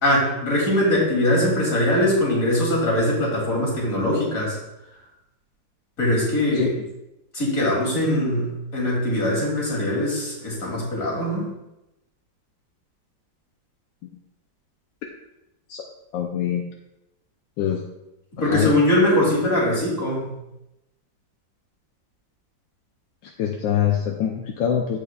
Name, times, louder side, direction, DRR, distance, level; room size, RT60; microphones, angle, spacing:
voice 1, 0.0-4.6 6.0-6.7 7.3-11.5 18.3-20.3, left 1 dB, 45° left, -5 dB, 3.3 m, -21 dB
voice 2, 16.1-16.6 17.6-17.8 18.4-18.7 23.2-25.0, left 9 dB, 80° left, 2 dB, 1.4 m, -24 dB
15.0 x 5.3 x 2.3 m, 0.92 s
omnidirectional pair, 2.0 m